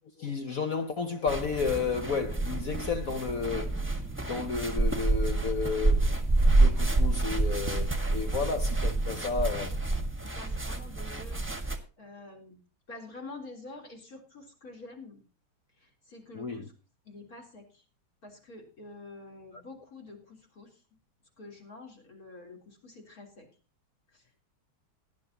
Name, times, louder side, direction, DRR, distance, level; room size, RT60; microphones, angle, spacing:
voice 1, 0.2-3.9 4.2-6.1 6.6-9.8 16.3-16.7, left 5 dB, 60° left, 0.9 m, -32 dB
sound 1, 1.3-11.8, right 2 dB, 5° right, 1.4 m, -28 dB
voice 2, 9.1-9.4 10.2-11.7 12.0-12.6 12.9-15.2 15.8-16.7 17.0-17.8 18.2-20.8 21.4-23.5 24.1-24.4, left 2 dB, 40° left, 4.1 m, -48 dB
18.5 x 10.5 x 2.9 m
omnidirectional pair, 2.4 m